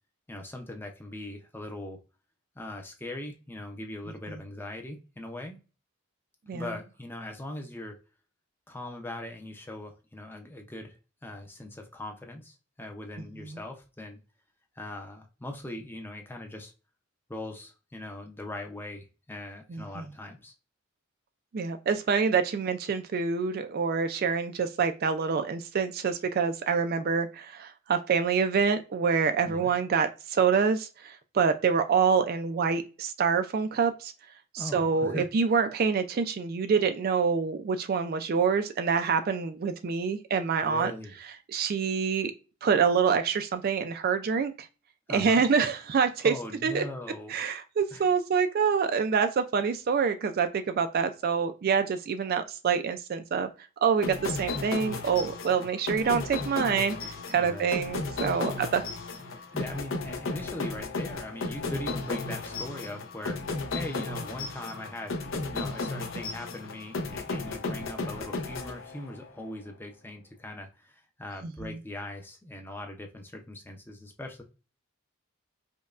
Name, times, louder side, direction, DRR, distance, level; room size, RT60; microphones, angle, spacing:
voice 1, 0.3-2.0 2.6-5.6 6.5-8.0 8.7-14.2 14.8-16.7 17.3-20.5 29.4-29.7 34.6-35.3 40.6-41.2 45.1-45.4 46.2-47.4 47.9-48.1 55.6-55.7 57.4-57.8 58.4-58.6 59.5-65.2 65.5-74.4, left 1 dB, 10° left, 0.5 m, -40 dB
voice 2, 19.7-20.0 21.5-34.1 34.5-40.9 41.5-42.3 42.6-44.7 45.1-46.3 46.6-46.8 47.3-53.5 53.8-58.8, right 6 dB, 45° right, 0.3 m, -26 dB
sound 1, 54.0-69.3, left 3 dB, 60° left, 0.7 m, -34 dB
5.2 x 2.2 x 2.4 m
head